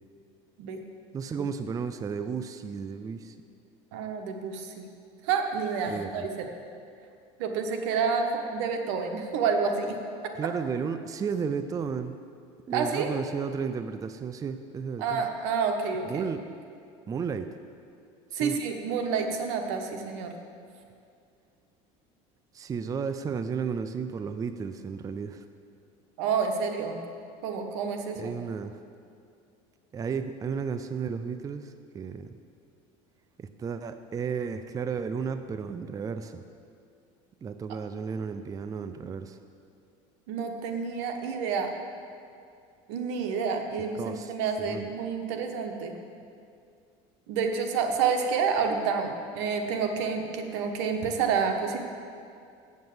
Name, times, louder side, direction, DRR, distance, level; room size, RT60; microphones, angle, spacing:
voice 1, 1.1-3.3 5.9-6.3 10.3-12.2 12.7-15.3 16.0-16.4 17.1-17.5 18.4-18.6 22.5-25.4 28.1-28.8 29.9-32.3 33.4-36.4 37.4-39.4 43.9-44.9, right 6 dB, 25° right, 10 dB, 0.4 m, -33 dB
voice 2, 3.9-4.8 5.2-6.5 7.4-10.0 12.7-13.1 15.0-16.3 18.3-20.3 26.2-27.0 27.4-28.3 40.3-41.7 42.9-45.9 47.3-51.8, right 5 dB, 85° right, 4 dB, 1.1 m, -29 dB
7.6 x 7.3 x 7.8 m, 2.4 s
supercardioid pair, 115°, 14 cm